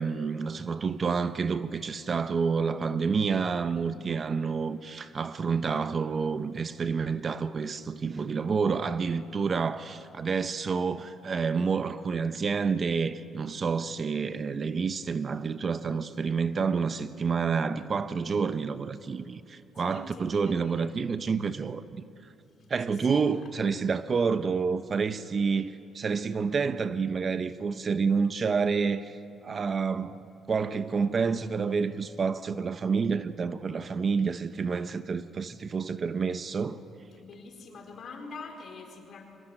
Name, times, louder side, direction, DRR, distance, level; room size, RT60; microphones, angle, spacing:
voice 1, 0.0-22.0 22.7-29.2 29.4-30.2 30.5-36.8, right 5 dB, 45° right, 0.9 m, -29 dB
voice 2, 19.8-20.9 23.0-23.2 37.1-39.2, left 3 dB, 60° left, 4.2 m, -45 dB
23.0 x 21.0 x 9.1 m
cardioid pair, 90°, 0 cm